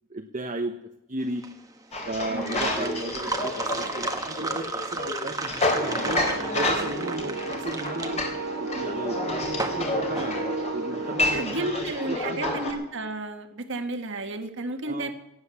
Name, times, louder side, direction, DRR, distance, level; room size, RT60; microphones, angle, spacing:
voice 1, 0.1-0.7 1.1-1.4 2.1-6.2 6.5-8.2 8.6-9.2 9.7-10.4 10.7-12.6 14.8-15.1, right 2 dB, 35° right, 3 dB, 1.1 m, -34 dB
sound 1, 1.2-11.1, right 3 dB, 15° right, 1.4 m, -34 dB
sound 2, 1.9-12.7, left 2 dB, 30° left, 3.4 m, -30 dB
voice 2, 2.3-3.0 11.3-15.1, right 2 dB, 60° right, 6 dB, 1.7 m, -32 dB
sound 3, 5.7-11.5, right 3 dB, 85° right, 1.9 m, -33 dB
18.0 x 11.0 x 7.1 m, 0.88 s
head